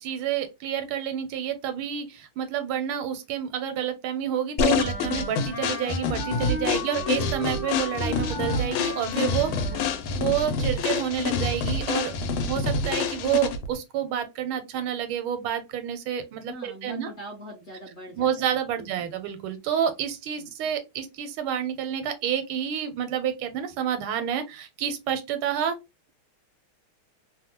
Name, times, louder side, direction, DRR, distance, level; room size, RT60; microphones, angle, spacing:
voice 1, 0.0-9.5 10.2-12.1 12.4-17.1 18.1-25.7, right 9 dB, 90° right, 1.5 m, -29 dB
sound 1, 4.6-13.7, left 5 dB, 80° left, 1.4 m, -27 dB
Wind instrument woodwind instrument, 4.7-10.0, left 2 dB, 65° left, 0.3 m, -35 dB
voice 2, 6.7-7.3 9.5-10.2 16.5-18.9 20.4-20.7, equal, 45° left, 0.9 m, -43 dB
3.4 x 2.1 x 2.8 m
omnidirectional pair, 2.3 m